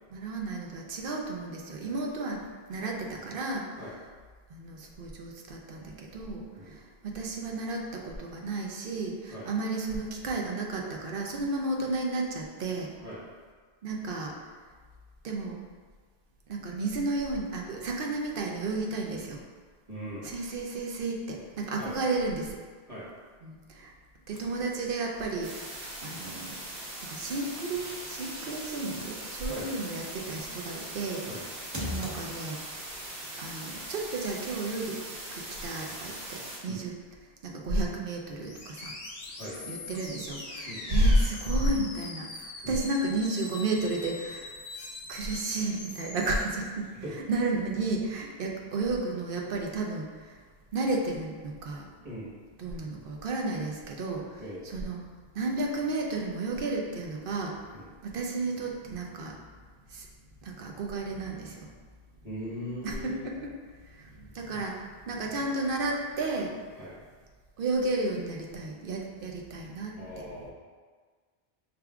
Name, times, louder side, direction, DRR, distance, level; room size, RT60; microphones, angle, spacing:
voice 1, 0.1-2.4 2.7-3.8 4.5-12.9 13.8-14.3 15.2-15.6 16.5-19.4 20.2-22.6 23.4-23.9 24.3-25.7 26.0-26.6 27.1-31.2 31.8-32.6 33.4-35.0 35.3-36.9 37.4-38.9 39.7-44.6 45.1-46.9 47.3-50.3 50.7-51.8 52.6-55.0 55.3-57.6 58.0-59.4 59.9-60.1 60.4-61.7 62.8-63.5 63.9-66.5 67.6-70.2, right 2 dB, 65° right, 0 dB, 0.8 m, -32 dB
voice 2, 19.9-20.3 21.8-22.1 22.9-23.1 29.5-29.9 31.2-31.4 36.7-36.8 39.4-39.8 40.6-40.9 42.6-42.8 47.0-47.1 52.0-52.3 54.4-54.7 57.7-57.9 62.2-63.3 66.8-66.9 69.9-70.5, equal, 40° right, -10 dB, 1.1 m, -40 dB
sound 1, 24.3-25.4 27.3-32.7, left 1 dB, 25° right, 0.5 m, -44 dB
sound 2, 25.4-36.6, right 1 dB, 85° right, 1.2 m, -41 dB
sound 3, 38.4-46.4, left 3 dB, 50° left, 0.6 m, -42 dB
5.1 x 3.4 x 2.3 m, 1.5 s
omnidirectional pair, 1.0 m